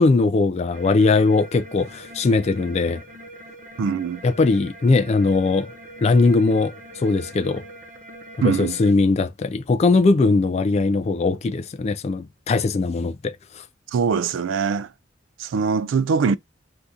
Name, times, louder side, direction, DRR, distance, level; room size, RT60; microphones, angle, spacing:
voice 1, 0.0-3.0 4.2-5.7 6.0-7.6 8.4-13.6, left 3 dB, 35° left, 0.3 m, -20 dB
sound 1, 0.7-8.9, right 1 dB, 40° right, 0.8 m, -42 dB
voice 2, 3.8-4.2 8.4-8.8 13.9-14.9 15.4-16.4, right 5 dB, 70° right, 0.3 m, -22 dB
2.7 x 2.3 x 3.6 m
head